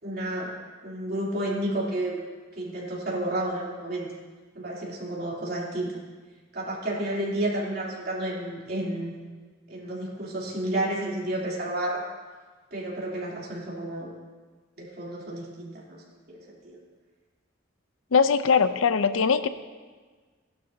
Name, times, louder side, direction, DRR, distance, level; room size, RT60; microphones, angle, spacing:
voice 1, 0.0-0.5 0.8-2.2 2.5-4.1 4.5-5.9 6.5-9.1 9.7-12.0 12.7-14.1 14.8-16.0 16.3-16.8, right 1 dB, 55° right, -5 dB, 3.1 m, -31 dB
voice 2, 18.1-19.5, left 5 dB, 85° left, 12 dB, 0.6 m, -21 dB
17.0 x 11.5 x 2.8 m, 1.4 s
head